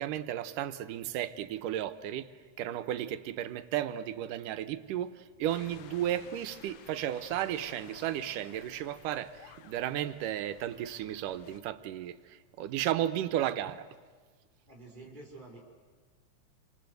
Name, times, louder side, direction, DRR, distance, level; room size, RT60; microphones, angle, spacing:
voice 1, 0.0-2.3 2.6-13.9, right 12 dB, 85° right, 11 dB, 2.6 m, -34 dB
sound 1, 5.5-11.6, left 10 dB, 75° left, 2.5 m, -54 dB
voice 2, 14.7-15.7, right 2 dB, 15° right, -1 dB, 4.3 m, -49 dB
28.5 x 26.5 x 7.9 m, 1.4 s
omnidirectional pair, 3.7 m